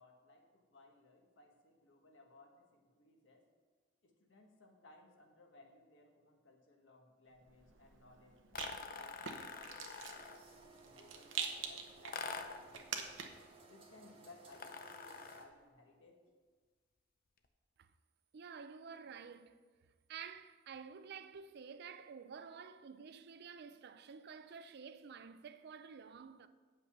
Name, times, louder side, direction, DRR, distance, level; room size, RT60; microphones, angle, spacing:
voice 1, 0.0-3.5 4.0-8.4 8.9-13.1 13.6-16.2, left 2 dB, 70° left, 1.3 m, -62 dB
Rattle, 7.4-13.5, right 6 dB, 80° right, 0.9 m, -46 dB
sound 1, 8.5-10.5 12.1-12.7 14.5-15.6, left 5 dB, 50° left, 0.6 m, -46 dB
sound 2, 10.1-15.5, right 3 dB, 30° right, 1.2 m, -60 dB
voice 2, 18.3-19.6 20.1-26.5, right 6 dB, 55° right, 0.4 m, -51 dB
8.3 x 5.4 x 5.8 m
head